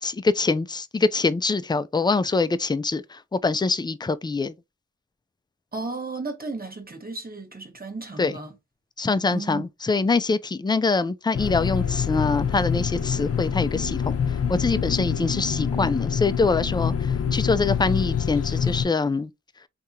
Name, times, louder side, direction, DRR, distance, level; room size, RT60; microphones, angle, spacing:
voice 1, 0.0-4.5 8.2-8.4 9.0-19.3, left 3 dB, 15° left, 0.3 m, -24 dB
voice 2, 5.7-8.5 9.3-9.6, right 3 dB, 30° right, 1.1 m, -34 dB
sound 1, 11.3-18.9, left 7 dB, 55° left, 0.6 m, -26 dB
3.5 x 2.8 x 2.5 m
cardioid pair, 60°, 30 cm